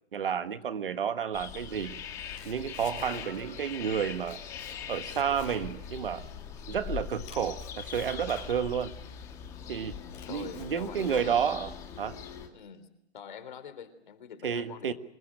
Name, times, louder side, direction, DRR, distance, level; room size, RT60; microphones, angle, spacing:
voice 1, 0.1-2.0 2.4-4.4 4.9-6.3 6.7-8.9 9.7-10.0 10.3-12.2 14.4-14.9, right 8 dB, 50° right, 11 dB, 1.6 m, -31 dB
sound 1, 1.3-12.5, left 8 dB, 10° left, 1.7 m, -42 dB
Domestic sounds home sounds, 2.1-3.6 4.0-6.5 6.9-8.9 9.4-9.5 9.9-11.9, left 8 dB, 30° left, 5.3 m, -49 dB
voice 2, 10.3-11.7 12.5-12.9 13.1-14.9, left 7 dB, 45° left, 11 dB, 3.6 m, -44 dB
26.0 x 21.0 x 8.8 m, 0.77 s
hypercardioid pair, 175°, 34 cm